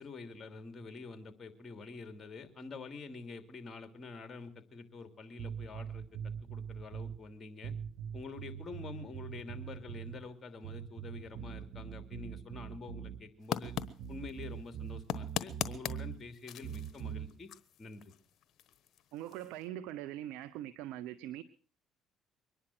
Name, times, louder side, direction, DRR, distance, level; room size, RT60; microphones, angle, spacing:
voice 1, 0.0-7.7 8.1-13.8 14.1-17.5 17.8-18.1, left 4 dB, 35° left, 8 dB, 2.9 m, -47 dB
sound 1, 5.4-7.2 7.6-10.2 10.6-13.2 13.6-16.2 16.6-17.3, right 8 dB, 60° right, 3.1 m, -42 dB
sound 2, 13.4-19.7, left 9 dB, 60° left, 1.2 m, -42 dB
voice 2, 19.1-21.4, right 13 dB, 80° right, 10 dB, 0.8 m, -42 dB
23.5 x 10.0 x 6.1 m, 0.42 s
supercardioid pair, 80°, 0 cm